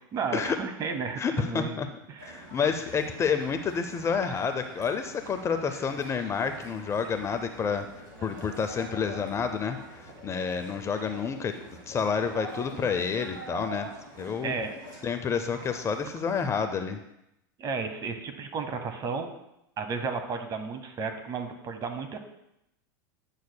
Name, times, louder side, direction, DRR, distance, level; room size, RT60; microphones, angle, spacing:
voice 1, 0.1-1.8 2.1-2.5 14.4-14.7 17.6-19.3 19.8-22.2, right 5 dB, 35° right, 7 dB, 1.0 m, -33 dB
voice 2, 1.2-1.9 2.2-7.8 8.2-9.8 10.2-11.5 11.9-13.9 14.2-14.5 15.0-17.0, left 6 dB, 25° left, 8 dB, 0.5 m, -29 dB
sound 1, 2.2-16.5, right 1 dB, 80° right, 2.4 m, -45 dB
9.4 x 6.4 x 2.2 m, 0.84 s
hypercardioid pair, 105°, 11 cm